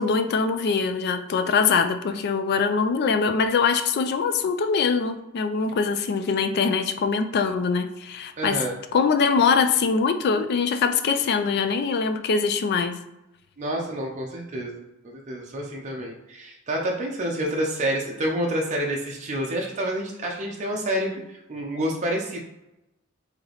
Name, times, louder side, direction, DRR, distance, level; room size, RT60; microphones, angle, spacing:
voice 1, 0.0-8.6 8.9-13.0, left 5 dB, 50° left, 8 dB, 0.3 m, -23 dB
voice 2, 8.4-8.8 13.6-22.4, right 1 dB, 35° right, -1 dB, 0.5 m, -28 dB
3.2 x 2.8 x 3.9 m, 0.92 s
head